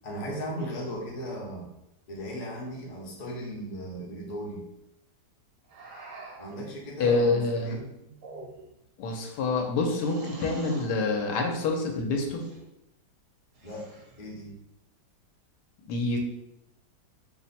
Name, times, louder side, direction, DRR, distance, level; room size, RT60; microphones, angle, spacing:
voice 1, 0.0-1.7 2.1-4.6 6.4-7.9 13.6-14.5, equal, 45° left, -3 dB, 0.5 m, -37 dB
sound 1, 5.7-6.6 8.1-8.8 10.0-11.0 12.2-12.6 13.5-14.3, right 2 dB, 60° right, 1.1 m, -45 dB
voice 2, 7.0-7.8 9.0-12.4 15.9-16.2, left 3 dB, 80° left, 2 dB, 1.2 m, -27 dB
2.9 x 2.1 x 4.0 m, 0.84 s
omnidirectional pair, 1.8 m